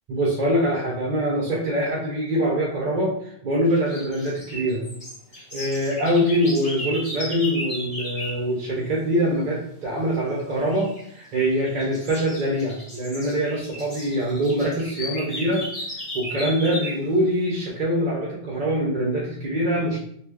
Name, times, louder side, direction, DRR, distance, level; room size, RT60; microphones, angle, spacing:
voice 1, 0.1-4.8 5.5-15.6 16.1-20.0, equal, 50° right, -4 dB, 0.6 m, -24 dB
sound 1, 3.7-8.4 10.7-11.0 11.5-17.1, left 1 dB, 50° left, 1.3 m, -35 dB
2.5 x 2.3 x 3.3 m, 0.70 s
omnidirectional pair, 1.1 m